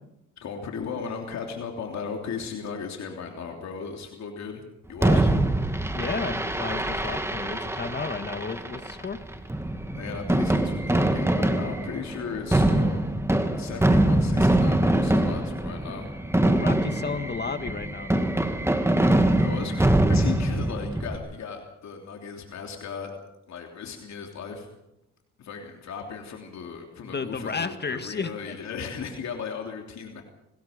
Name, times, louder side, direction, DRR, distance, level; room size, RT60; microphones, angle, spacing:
voice 1, 0.4-4.6 4.9-5.4 9.9-13.0 13.5-16.1 19.3-23.1 23.5-24.7 25.4-30.2, left 6 dB, 65° left, 2 dB, 3.2 m, -36 dB
Fireworks, 5.0-21.2, right 1 dB, 10° right, 2.2 m, -24 dB
voice 2, 5.1-5.4 5.9-9.2 16.4-18.3 27.0-28.6, left 5 dB, 35° left, 9 dB, 1.8 m, -33 dB
24.5 x 20.0 x 5.2 m, 0.85 s
cardioid pair, 90°, 30 cm